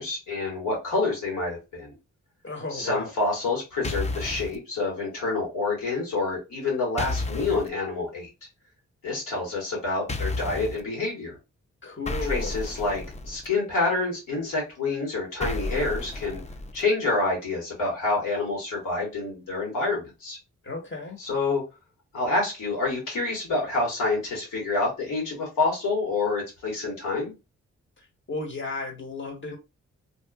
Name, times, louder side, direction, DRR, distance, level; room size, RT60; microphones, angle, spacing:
voice 1, 0.0-2.0 2.7-8.3 9.0-11.4 12.2-16.4 16.7-20.4 21.2-21.6 22.1-27.3, left 3 dB, 85° left, 1.7 m, -27 dB
voice 2, 2.4-3.1 11.8-12.6 20.6-21.2 28.3-29.6, left 3 dB, 40° left, 1.2 m, -34 dB
sound 1, 3.8-4.6 7.0-7.7 10.1-10.8 12.1-13.5 15.4-16.8, left 2 dB, 20° left, 0.5 m, -32 dB
2.7 x 2.4 x 2.4 m
supercardioid pair, 45°, 31 cm